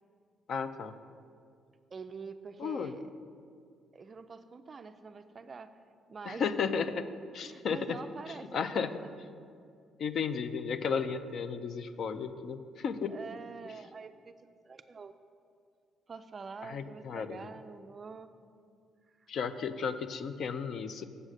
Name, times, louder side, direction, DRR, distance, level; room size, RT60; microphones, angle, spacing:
voice 1, 0.5-0.9 2.6-2.9 6.3-7.1 7.3-8.0 8.3-8.9 10.0-13.2 16.6-17.5 19.3-21.0, left 6 dB, 50° left, 11 dB, 0.4 m, -34 dB
voice 2, 1.9-3.0 3.9-5.7 6.1-6.5 7.4-9.1 13.1-14.3 14.7-15.1 16.1-18.3 19.1-19.3, right 5 dB, 30° right, 10 dB, 0.3 m, -46 dB
7.4 x 6.4 x 6.4 m, 2.3 s
cardioid pair, 160°, 0 cm